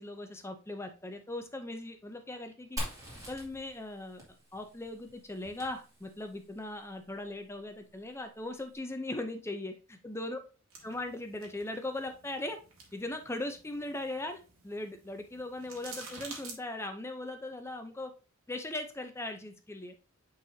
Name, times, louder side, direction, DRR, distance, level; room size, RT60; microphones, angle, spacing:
voice 1, 0.0-2.8 3.3-10.4 10.8-12.6 12.9-18.1 18.5-20.0, left 2 dB, 10° left, 6 dB, 0.6 m, -39 dB
Fire, 2.8-6.4, equal, 15° right, 2.3 m, -43 dB
sound 1, 10.7-16.6, right 4 dB, 70° right, 1.8 m, -50 dB
9.2 x 4.0 x 2.7 m, 0.33 s
head